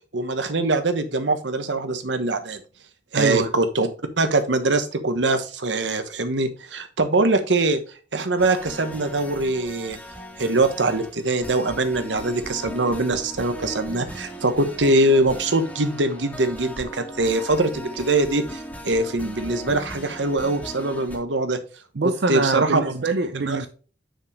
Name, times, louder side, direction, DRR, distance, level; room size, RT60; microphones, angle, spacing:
voice 1, 0.1-2.6 3.1-3.9 4.2-7.8 8.1-10.0 10.4-21.6 22.0-22.9 23.5-23.6, right 2 dB, 80° right, 9 dB, 1.1 m, -23 dB
voice 2, 3.1-3.5 22.0-23.7, right 3 dB, 65° right, 7 dB, 0.6 m, -24 dB
sound 1, 8.4-21.2, equal, 10° left, 1.8 m, -38 dB
7.1 x 6.4 x 3.2 m, 0.36 s
head